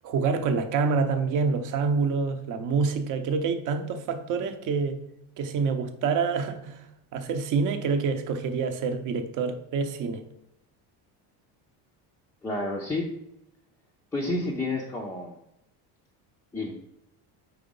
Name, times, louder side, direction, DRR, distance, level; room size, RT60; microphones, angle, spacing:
voice 1, 0.0-5.0 5.4-6.8 7.1-10.2, right 5 dB, 45° right, 8 dB, 0.7 m, -27 dB
voice 2, 12.4-13.1 14.1-15.3 16.5-16.7, left 2 dB, 5° left, -3 dB, 0.4 m, -30 dB
4.9 x 3.8 x 5.3 m, 0.82 s
cardioid pair, 155°, 45 cm